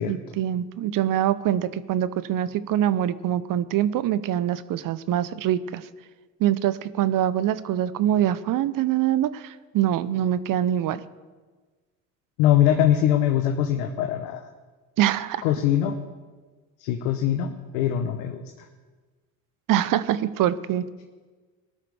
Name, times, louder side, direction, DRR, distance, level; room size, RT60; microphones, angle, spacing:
voice 1, 0.0-5.8 6.4-11.0 15.0-15.4 19.7-20.8, right 11 dB, 50° right, 15 dB, 0.8 m, -24 dB
voice 2, 12.4-14.5 15.4-15.9 16.8-18.7, left 11 dB, 75° left, 6 dB, 1.0 m, -22 dB
19.0 x 12.5 x 3.4 m, 1.4 s
hypercardioid pair, 65°, 41 cm